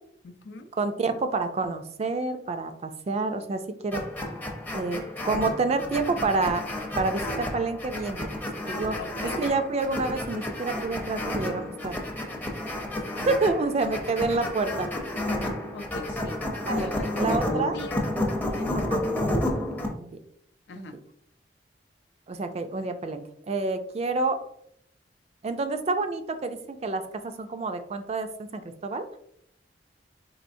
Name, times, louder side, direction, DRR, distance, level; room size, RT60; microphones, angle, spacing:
voice 1, 0.2-0.7 9.0-9.4 13.9-14.3 15.3-16.4 16.7-19.1 20.7-20.9, left 2 dB, 75° left, 7 dB, 0.5 m, -40 dB
voice 2, 0.8-4.0 4.7-6.6 7.0-8.3 8.7-9.0 9.4-12.0 13.3-14.9 16.7-16.9 17.2-17.8 18.7-19.0 19.5-19.6 20.0-20.1 20.8-20.9 22.3-24.4 25.4-29.1, right 3 dB, 35° right, 8 dB, 0.4 m, -28 dB
sound 1, 3.9-19.9, left 1 dB, 10° left, 0.6 m, -31 dB
4.3 x 3.1 x 2.6 m, 0.70 s
head